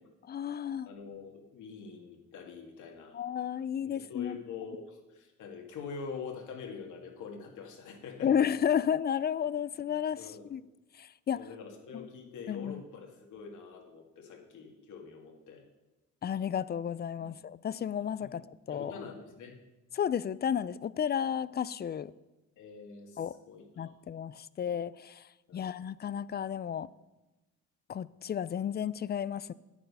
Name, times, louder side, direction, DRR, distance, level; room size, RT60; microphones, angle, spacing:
voice 1, 0.2-0.9 3.1-4.4 8.2-10.6 10.9-11.5 11.9-12.1 12.5-12.8 16.2-18.9 19.9-22.1 23.2-23.4 23.8-26.9 27.9-29.5, left 8 dB, 35° left, 0.4 m, -32 dB
voice 2, 0.9-3.2 3.8-8.3 10.2-10.4 11.3-15.6 17.2-17.3 18.2-18.3 18.7-19.6 22.6-23.7 25.5-25.7, left 5 dB, 80° left, 2.0 m, -45 dB
9.3 x 9.1 x 5.4 m
cardioid pair, 90°, 30 cm